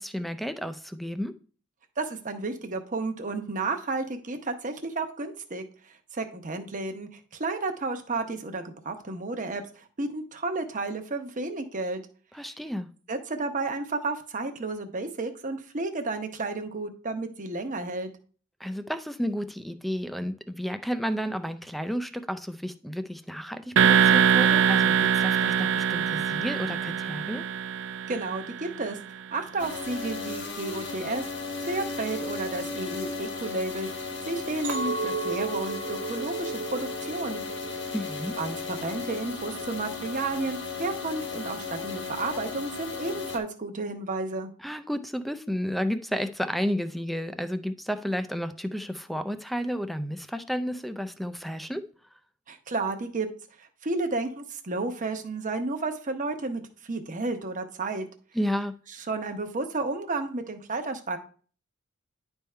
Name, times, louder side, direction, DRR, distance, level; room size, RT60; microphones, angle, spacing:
voice 1, 0.0-1.3 12.3-12.9 18.6-27.5 37.9-38.4 44.6-51.9 58.3-58.8, equal, ahead, 10 dB, 0.4 m, -32 dB
voice 2, 2.0-5.6 6.1-7.1 7.4-12.0 13.1-18.1 28.1-29.0 29.3-31.3 31.6-37.4 38.4-44.5 52.5-53.3 53.6-58.1 59.1-61.2, right 3 dB, 40° right, 6 dB, 0.9 m, -32 dB
sound 1, 23.8-28.7, right 8 dB, 65° right, 0.5 m, -23 dB
sound 2, 29.6-43.4, left 4 dB, 60° left, 1.4 m, -35 dB
Chink clink, 34.6-39.0 39.4-39.9, right 4 dB, 85° right, 1.3 m, -35 dB
10.5 x 3.6 x 4.3 m, 0.42 s
head